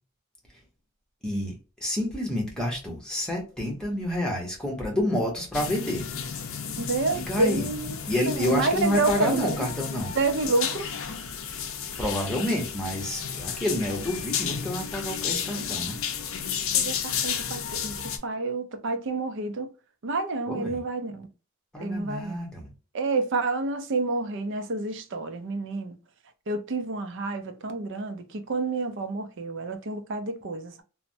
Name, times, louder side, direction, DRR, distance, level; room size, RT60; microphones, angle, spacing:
voice 1, 1.2-1.5 1.8-6.0 7.1-7.7 8.1-10.1 12.0-16.0 20.5-20.8 21.7-22.7, left 1 dB, 5° left, 0.8 m, -29 dB
sound 1, 5.5-18.2, left 7 dB, 60° left, 0.5 m, -32 dB
voice 2, 6.8-7.9 8.3-9.7 10.1-10.9 16.7-19.7 20.0-21.2 21.8-22.4 22.9-26.0 26.5-30.8, right 3 dB, 55° right, 0.4 m, -29 dB
3.2 x 2.0 x 2.6 m
head